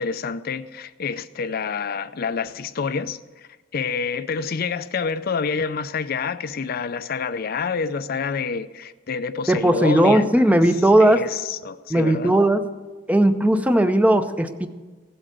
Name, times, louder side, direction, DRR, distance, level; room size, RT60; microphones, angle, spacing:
voice 1, 0.0-3.5 3.7-10.6 11.0-12.4, left 5 dB, 50° left, 0.5 m, -28 dB
voice 2, 9.5-11.2 11.9-12.6 13.1-14.7, right 1 dB, 10° right, 0.7 m, -17 dB
16.0 x 7.9 x 7.6 m
head